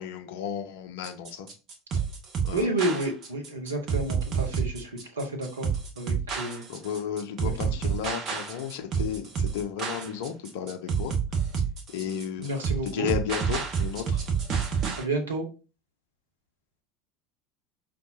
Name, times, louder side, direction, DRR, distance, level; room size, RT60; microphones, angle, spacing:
voice 1, 0.0-1.5 2.4-2.7 6.7-11.1 11.9-12.5 12.8-14.2, left 8 dB, 60° left, 0.6 m, -33 dB
sound 1, 1.0-15.0, right 6 dB, 40° right, 1.0 m, -29 dB
voice 2, 2.5-5.7 6.0-6.6 7.4-7.5 12.4-13.1 15.0-15.4, right 2 dB, 75° right, 1.0 m, -30 dB
5.5 x 2.6 x 2.8 m
figure-of-eight pair, 70°, 0 cm